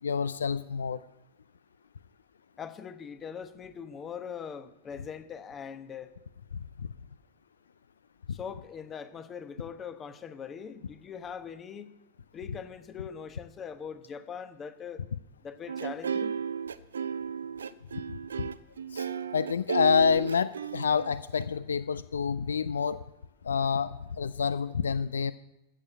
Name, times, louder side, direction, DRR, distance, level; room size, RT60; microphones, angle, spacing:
voice 1, 0.0-1.0 17.9-18.5 18.9-23.0 23.4-25.3, left 6 dB, 70° left, 17 dB, 0.4 m, -28 dB
voice 2, 2.6-6.1 8.3-11.9 12.3-15.0 15.4-16.3, left 7 dB, 25° left, 11 dB, 1.1 m, -41 dB
sound 1, 15.7-21.4, right 7 dB, 70° right, 0.5 m, -34 dB
14.5 x 7.3 x 7.8 m, 0.90 s
figure-of-eight pair, 90°, 0 cm